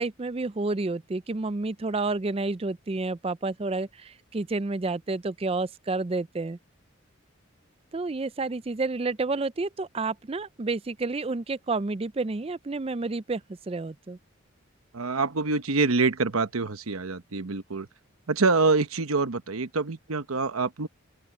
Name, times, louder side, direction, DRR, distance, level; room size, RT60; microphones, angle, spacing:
voice 1, 0.0-6.6 7.9-14.2, right 3 dB, 25° right, 0.4 m, -30 dB
voice 2, 14.9-17.9 18.3-20.9, right 3 dB, 90° right, 1.1 m, -26 dB
open air
head